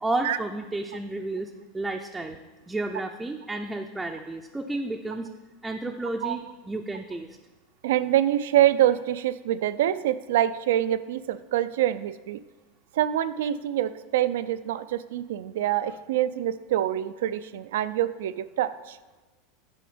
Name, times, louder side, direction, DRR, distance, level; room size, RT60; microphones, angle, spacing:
voice 1, 0.0-2.4 2.7-5.3 5.6-7.3, right 2 dB, 10° right, 2 dB, 0.5 m, -32 dB
voice 2, 7.8-12.4 12.9-19.0, right 12 dB, 80° right, 14 dB, 0.4 m, -25 dB
8.6 x 5.0 x 5.1 m, 1.2 s
supercardioid pair, 115°, 0 cm